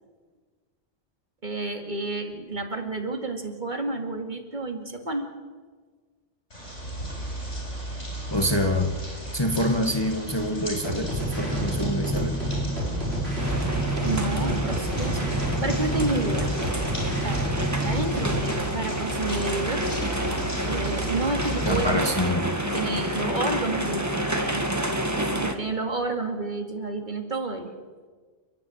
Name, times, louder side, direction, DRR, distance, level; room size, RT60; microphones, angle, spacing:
voice 1, 1.4-5.3 14.0-15.3 15.6-16.5 17.2-17.5 17.8-19.9 20.7-22.1 22.7-24.6 25.3-27.7, right 2 dB, 40° right, 4 dB, 2.5 m, -30 dB
sound 1, 6.5-22.0, right 1 dB, 80° left, 8.4 m, -34 dB
voice 2, 8.3-8.9 9.3-12.4 21.6-22.5, left 1 dB, 20° left, 5 dB, 1.4 m, -26 dB
sound 2, 10.8-18.5, right 1 dB, 60° right, 4.3 m, -28 dB
sound 3, 13.4-25.5, right 1 dB, 15° right, 1.7 m, -29 dB
30.0 x 10.5 x 9.5 m, 1.5 s
omnidirectional pair, 1.2 m